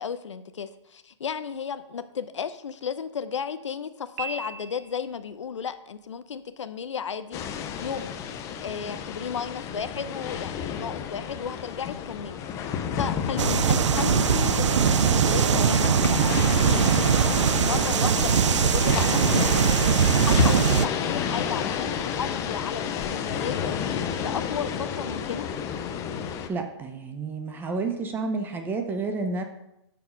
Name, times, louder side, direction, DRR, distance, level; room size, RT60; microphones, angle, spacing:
voice 1, 0.0-8.2 8.6-23.7 24.2-25.5, left 7 dB, 75° left, 12 dB, 0.7 m, -34 dB
Piano, 4.2-5.3, right 5 dB, 40° right, 1.0 m, -37 dB
sound 1, 7.3-26.5, left 8 dB, 20° left, 0.6 m, -30 dB
sound 2, 13.4-20.9, right 9 dB, 75° right, 0.4 m, -21 dB
voice 2, 26.5-29.4, right 3 dB, 15° right, 6 dB, 0.8 m, -30 dB
11.0 x 4.9 x 5.3 m, 0.86 s
hypercardioid pair, 140°, 15 cm